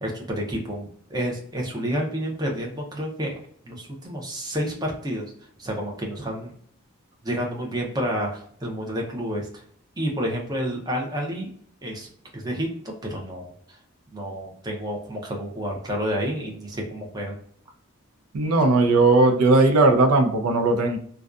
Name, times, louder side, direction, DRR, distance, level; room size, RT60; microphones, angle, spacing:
voice 1, 0.0-3.3 3.6-5.3 5.6-6.5 7.2-9.6 10.0-11.5 11.8-12.1 12.3-13.8 14.1-17.4, equal, 15° right, -1 dB, 0.6 m, -30 dB
voice 2, 18.3-21.0, right 2 dB, 90° right, 5 dB, 0.5 m, -18 dB
2.5 x 2.3 x 2.3 m, 0.62 s
head